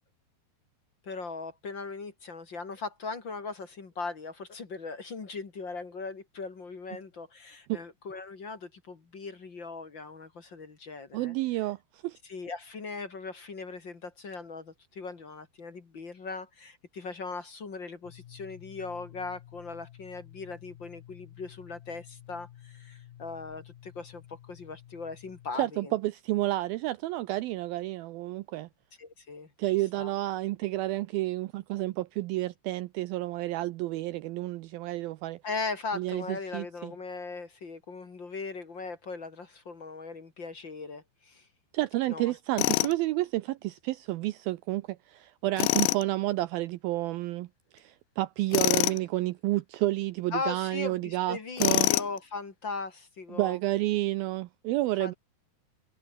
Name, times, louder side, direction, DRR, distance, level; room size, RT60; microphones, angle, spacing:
voice 1, 1.0-11.3 12.2-26.0 29.0-29.5 30.0-30.1 35.4-41.5 42.1-42.3 50.3-53.6 55.0-55.1, left 4 dB, 35° left, 2.3 m, -39 dB
voice 2, 11.1-12.2 25.6-28.7 29.6-35.4 35.9-36.9 41.7-47.5 47.7-51.9 53.3-55.1, right 17 dB, 80° right, 2.2 m, -30 dB
sound 1, 18.0-25.5, left 12 dB, 65° left, 2.8 m, -51 dB
Tools, 42.6-43.0 45.6-46.0 48.5-49.0 51.6-52.2, left 21 dB, 90° left, 2.8 m, -25 dB
omnidirectional pair, 4.9 m